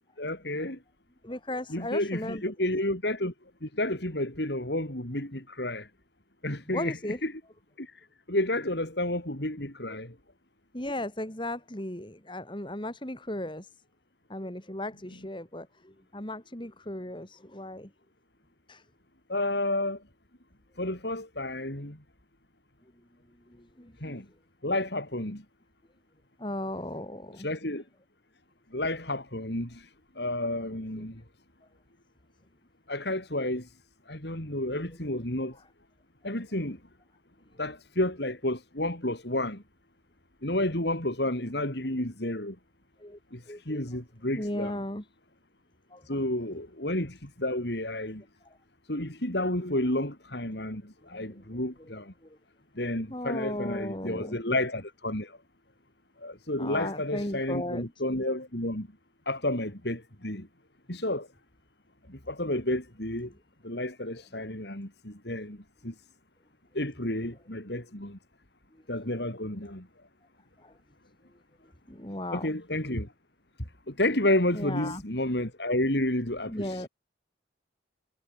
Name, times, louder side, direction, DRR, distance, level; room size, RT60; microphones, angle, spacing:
voice 1, 0.2-0.8 1.7-3.3 3.6-5.9 6.4-7.4 7.8-10.2 19.3-20.0 20.8-22.0 24.0-24.3 24.6-25.4 27.4-27.8 28.7-29.9 30.1-31.2 32.9-33.7 34.1-35.6 36.2-36.8 37.6-39.6 40.4-42.6 43.3-44.7 46.1-48.2 48.9-52.1 52.7-55.4 56.2-58.9 59.3-60.5 60.9-61.3 62.1-63.3 63.6-65.9 66.7-68.2 68.9-69.9 72.3-73.1 73.9-76.9, left 1 dB, 60° left, 4.7 m, -31 dB
voice 2, 1.2-2.4 6.7-7.2 10.7-13.7 14.3-17.9 18.7-18.8 23.5-24.2 26.4-27.5 31.0-31.1 43.0-43.2 43.5-43.8 44.3-45.1 45.9-46.2 51.1-51.6 52.2-52.4 53.1-54.4 56.6-57.9 70.6-70.8 71.9-72.6 74.5-75.0 76.5-76.9, left 1 dB, 25° left, 3.0 m, -36 dB
head